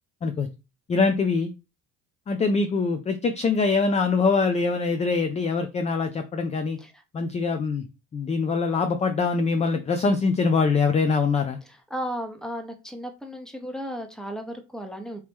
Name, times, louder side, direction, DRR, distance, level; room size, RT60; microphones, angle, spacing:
voice 1, 0.9-1.5 2.3-6.8 7.1-7.8 8.1-11.6, left 4 dB, 20° left, 7 dB, 0.3 m, -23 dB
voice 2, 11.9-15.2, equal, ahead, 5 dB, 0.8 m, -34 dB
2.9 x 2.9 x 3.5 m, 0.28 s
supercardioid pair, 80°, 41 cm